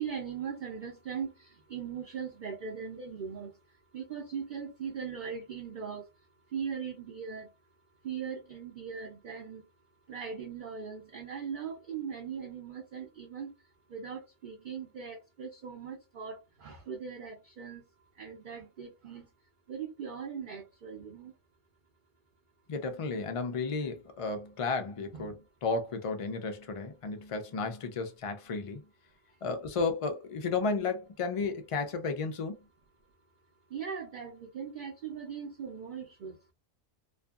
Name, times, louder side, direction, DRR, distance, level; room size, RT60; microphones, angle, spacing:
voice 1, 0.0-3.6 3.9-6.1 6.5-7.5 8.0-9.6 10.1-13.5 13.9-17.8 18.2-19.3 19.7-21.3 25.1-25.3 33.7-36.4, right 7 dB, 50° right, 0.7 m, -39 dB
voice 2, 22.7-28.8 29.4-32.6, left 4 dB, 55° left, 0.3 m, -33 dB
2.6 x 2.5 x 2.3 m
omnidirectional pair, 1.2 m